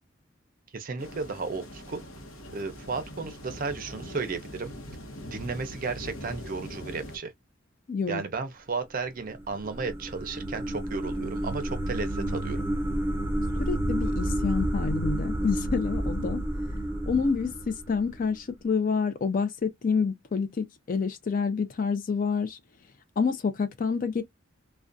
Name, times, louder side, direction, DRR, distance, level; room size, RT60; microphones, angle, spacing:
voice 1, 0.7-2.0 2.5-4.7 5.2-7.3 8.1-12.6, right 4 dB, 45° right, 0.5 m, -34 dB
sound 1, 1.0-7.2, equal, 90° left, 0.8 m, -42 dB
voice 2, 7.9-8.2 13.6-16.4 17.1-22.6 23.2-24.2, left 5 dB, 45° left, 0.4 m, -28 dB
sound 2, 9.1-18.3, right 1 dB, 10° right, 0.8 m, -30 dB
2.4 x 2.1 x 2.5 m
head